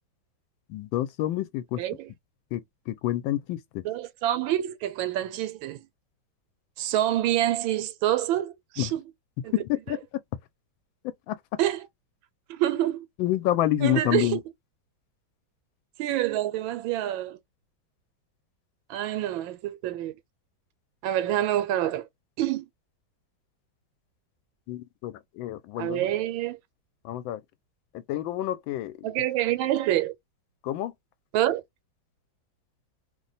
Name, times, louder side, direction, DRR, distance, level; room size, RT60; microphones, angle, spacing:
voice 1, 0.7-1.8 2.5-2.6 2.9-3.6 8.8-8.9 9.5-10.0 11.3-11.4 13.2-14.4 24.7-26.1 27.0-27.4 28.1-29.1 30.6-30.9, left 13 dB, 80° left, 1.3 m, -28 dB
voice 2, 1.8-2.1 3.8-5.9 6.8-9.1 9.4-9.5 9.9-10.0 11.6-11.9 12.5-13.1 13.8-14.4 16.0-17.4 18.9-20.1 21.0-22.0 22.4-22.7 25.8-26.6 29.0-30.1 31.3-31.6, right 13 dB, 90° right, 1.4 m, -27 dB
3.1 x 2.1 x 3.9 m
omnidirectional pair, 2.1 m